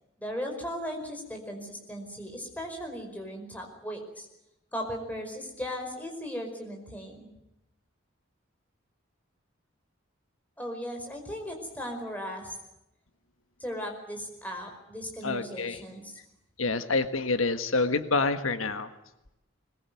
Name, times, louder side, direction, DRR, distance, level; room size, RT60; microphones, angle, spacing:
voice 1, 0.2-4.3 4.7-7.3 10.6-12.6 13.6-16.1, equal, 10° left, 2 dB, 5.2 m, -37 dB
voice 2, 15.2-15.8 16.6-18.9, left 3 dB, 90° left, 9 dB, 1.5 m, -27 dB
21.5 x 21.5 x 9.2 m, 0.89 s
head